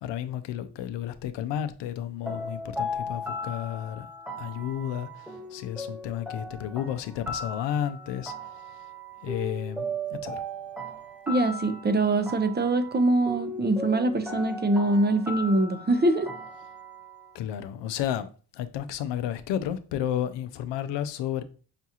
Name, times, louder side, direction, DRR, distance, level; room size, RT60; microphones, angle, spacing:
voice 1, 0.0-4.1 4.4-8.7 9.2-9.8 10.1-10.4 17.3-21.4, left 10 dB, 85° left, 0.5 m, -32 dB
sound 1, 2.2-17.3, equal, 5° right, 1.2 m, -37 dB
voice 2, 11.3-16.3, right 2 dB, 25° right, 0.5 m, -24 dB
5.8 x 2.3 x 2.8 m
cardioid pair, 65°, 42 cm